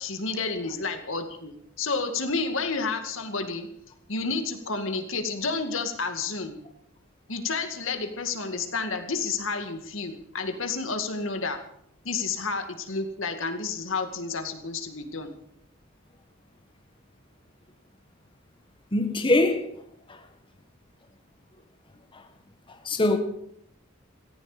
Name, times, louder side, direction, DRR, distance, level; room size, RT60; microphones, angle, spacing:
voice 1, 0.0-3.7 4.1-6.6 7.3-11.6 12.0-15.3, left 4 dB, 75° left, 2.2 m, -30 dB
voice 2, 18.9-19.7 20.1-20.2 22.1-22.3 22.7-23.2, left 2 dB, 25° left, 1.4 m, -23 dB
17.5 x 15.0 x 5.1 m
head